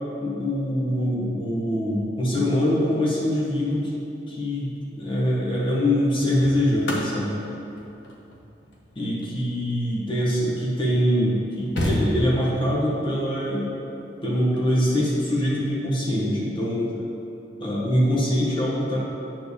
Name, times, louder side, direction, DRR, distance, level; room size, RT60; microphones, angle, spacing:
voice 1, 0.2-3.9 4.3-7.4 9.0-13.7 14.2-16.9 17.6-19.0, equal, 30° left, -6 dB, 1.5 m, -23 dB
sound 1, 4.8-5.1 5.9-10.5 11.1-11.2 11.4-12.7 14.3-14.6, equal, 85° left, 1.3 m, -31 dB
9.0 x 3.5 x 6.8 m, 2.8 s
head